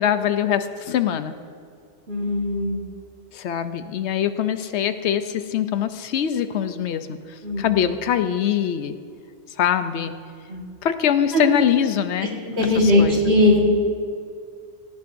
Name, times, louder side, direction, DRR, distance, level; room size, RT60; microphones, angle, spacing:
voice 1, 0.0-1.4 3.3-7.2 7.6-8.9 9.6-10.1 10.8-12.3 12.8-13.2, left 9 dB, 75° left, 10 dB, 0.9 m, -23 dB
voice 2, 2.1-2.9 7.4-7.8 10.5-10.6 11.3-11.4 12.2-12.3 12.6-13.6, left 1 dB, 65° right, -2 dB, 2.0 m, -19 dB
17.5 x 13.0 x 2.6 m, 2.2 s
omnidirectional pair, 1.2 m